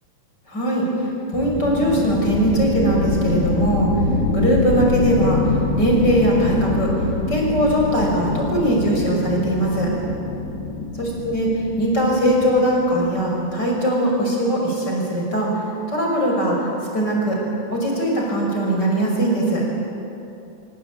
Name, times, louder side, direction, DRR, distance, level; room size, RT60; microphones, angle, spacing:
voice 1, 0.5-0.9 1.3-3.9 4.3-6.9 7.3-9.9 11.0-15.5 15.9-17.4 17.7-19.6, right 1 dB, 25° left, -2 dB, 6.4 m, -20 dB
sound 1, 1.3-13.6, left 3 dB, 60° left, 5.0 m, -25 dB
25.5 x 24.0 x 8.9 m, 2.8 s
omnidirectional pair, 4.8 m